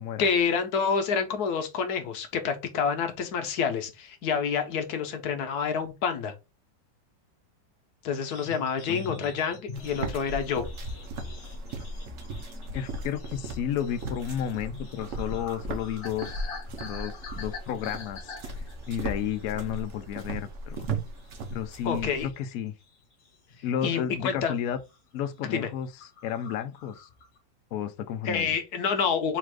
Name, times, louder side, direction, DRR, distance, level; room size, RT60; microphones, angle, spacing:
voice 1, 0.2-6.3 8.0-10.6 21.8-22.3 23.8-24.5 25.4-25.7 28.2-29.4, left 6 dB, 65° left, 1.1 m, -28 dB
sound 1, 8.3-20.0 20.3-20.6 21.0-22.5 22.8-23.6 24.1-24.3 24.6-25.0 25.3-25.4 25.6-25.7 26.0-27.4, left 4 dB, 45° left, 1.0 m, -45 dB
voice 2, 8.9-9.3 12.7-16.4 16.8-20.9 21.5-22.7 23.6-24.8 25.1-25.9 26.2-27.1 27.7-28.5, left 9 dB, 90° left, 0.7 m, -32 dB
sound 2, 9.7-22.3, right 2 dB, 55° right, 0.8 m, -37 dB
4.2 x 2.4 x 4.6 m
omnidirectional pair, 2.1 m